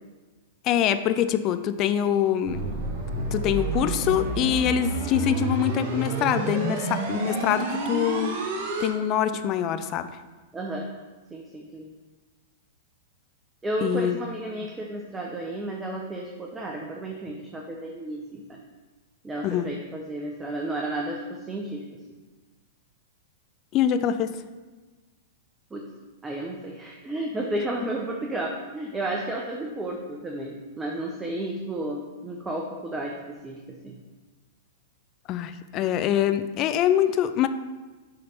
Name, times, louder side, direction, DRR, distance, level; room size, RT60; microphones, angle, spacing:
voice 1, 0.6-2.7 3.3-8.3 8.8-10.1 13.8-14.2 19.4-19.7 23.7-24.3 35.3-37.5, left 10 dB, 40° left, 11 dB, 0.4 m, -24 dB
sound 1, 2.5-8.9, right 3 dB, 55° right, 1.1 m, -29 dB
voice 2, 10.5-10.9 11.3-11.9 13.6-18.6 19.2-21.8 25.7-25.9 26.2-34.0, right 1 dB, 15° right, 0 dB, 0.8 m, -32 dB
6.7 x 3.3 x 5.5 m, 1.3 s
hypercardioid pair, 110°, 0 cm